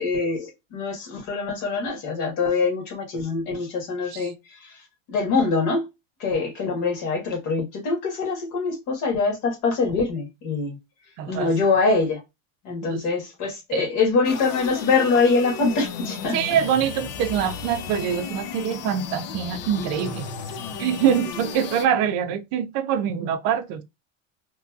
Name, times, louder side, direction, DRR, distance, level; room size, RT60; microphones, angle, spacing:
voice 1, 0.0-4.8 5.1-5.9 6.2-10.8 11.3-12.2 12.6-16.4, left 4 dB, 50° left, 1.4 m, -24 dB
voice 2, 11.2-11.5 12.8-13.0 13.7-13.8 16.3-20.3 20.8-23.8, right 8 dB, 50° right, 0.5 m, -24 dB
sound 1, 14.2-21.9, left 6 dB, 70° left, 0.7 m, -34 dB
3.0 x 2.6 x 2.3 m
cardioid pair, 165°, 37 cm